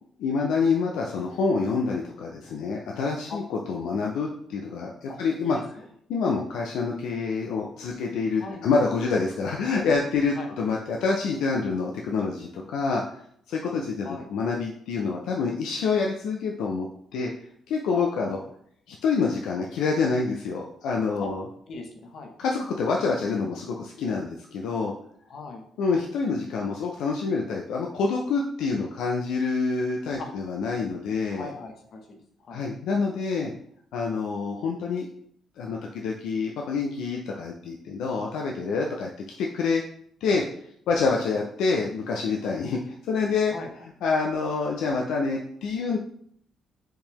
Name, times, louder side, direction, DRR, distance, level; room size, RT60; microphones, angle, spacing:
voice 1, 0.2-5.6 6.1-13.0 13.5-16.9 17.1-17.3 17.7-18.4 18.9-21.4 22.4-24.9 25.8-31.5 32.5-33.5 33.9-35.1 35.6-39.1 39.4-39.8 40.2-40.4 40.9-43.5 44.0-46.0, left 4 dB, 85° left, -1 dB, 0.4 m, -27 dB
voice 2, 5.1-5.8 8.4-8.6 10.3-10.5 14.0-14.3 18.0-18.1 21.2-21.3 21.7-22.3 25.3-25.6 30.2-30.3 31.3-32.6 43.5-43.7, left 3 dB, 60° left, 2 dB, 0.8 m, -39 dB
3.6 x 2.7 x 2.9 m, 0.66 s
cardioid pair, 90°, 0 cm